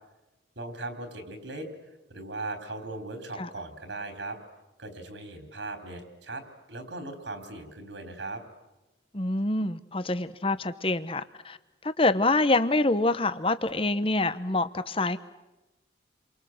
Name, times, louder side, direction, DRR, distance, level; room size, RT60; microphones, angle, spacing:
voice 1, 0.6-1.7 2.1-4.4 4.8-6.4 6.7-8.4, right 2 dB, 70° right, 7 dB, 3.9 m, -38 dB
voice 2, 9.1-11.6 11.8-15.2, left 2 dB, 30° left, 12 dB, 1.0 m, -26 dB
30.0 x 24.0 x 7.9 m, 1.0 s
head